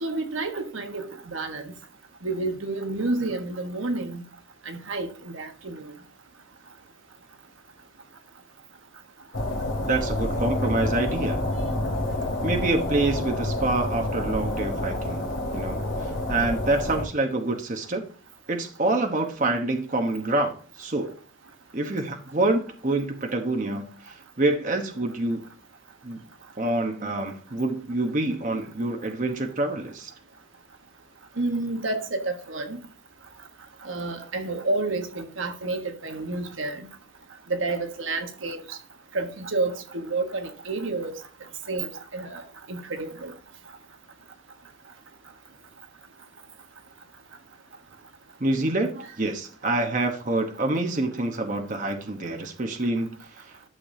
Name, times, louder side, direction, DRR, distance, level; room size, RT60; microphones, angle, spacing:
voice 1, 0.0-1.1 1.3-1.7 2.2-4.2 4.7-5.9 31.4-32.8 33.8-36.9 37.5-38.6 39.1-41.1 41.7-42.4 42.7-43.3 48.9-49.1, right 2 dB, 80° right, 1.3 m, -30 dB
sound 1, 9.3-17.0, left 1 dB, 65° left, 2.6 m, -28 dB
voice 2, 9.9-11.4 12.4-15.2 15.5-18.0 18.5-21.2 21.7-25.4 26.0-26.2 26.6-30.1 48.4-48.9 49.2-53.7, right 2 dB, 40° right, 1.1 m, -27 dB
12.0 x 6.7 x 2.7 m
head